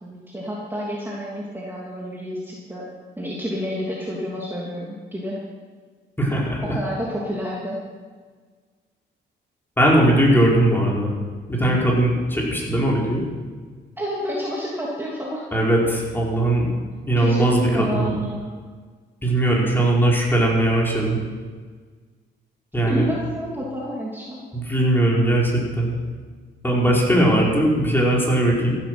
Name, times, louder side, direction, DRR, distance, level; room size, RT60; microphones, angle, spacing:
voice 1, 0.0-2.9 3.2-5.4 6.6-7.8 14.0-15.4 17.2-18.6 22.9-24.4, equal, 10° right, -4 dB, 3.0 m, -29 dB
voice 2, 6.2-6.8 9.8-11.1 11.5-13.2 15.5-16.7 17.1-18.1 19.2-21.2 22.7-23.1 24.5-26.0 26.6-28.7, right 1 dB, 10° left, -3 dB, 4.8 m, -19 dB
15.0 x 11.0 x 6.3 m, 1.5 s
cardioid pair, 90°, 20 cm